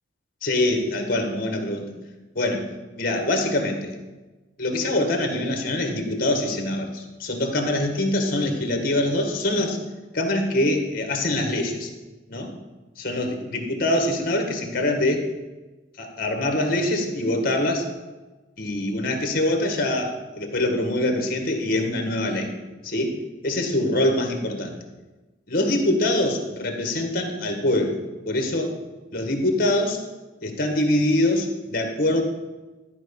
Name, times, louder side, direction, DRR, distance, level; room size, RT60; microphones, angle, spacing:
voice 1, 0.4-1.9 2.3-2.7 3.0-3.9 4.6-9.8 10.1-11.9 12.3-12.5 13.0-15.3 16.0-17.8 18.6-22.5 22.8-23.1 23.4-24.8 25.5-28.0 28.3-28.7 29.1-30.0 30.4-32.2, left 1 dB, 50° left, 4 dB, 1.8 m, -24 dB
12.5 x 5.2 x 7.1 m, 1.2 s
head